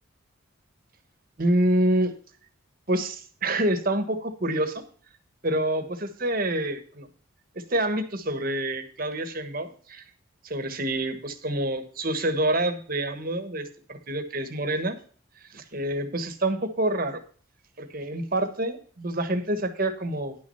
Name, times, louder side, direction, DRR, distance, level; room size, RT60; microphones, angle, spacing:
voice 1, 1.4-2.1 2.9-4.8 5.4-7.1 7.5-10.0 10.4-15.0 15.5-17.2 17.8-20.4, right 1 dB, 40° right, 8 dB, 1.3 m, -27 dB
10.5 x 6.3 x 5.6 m, 0.43 s
head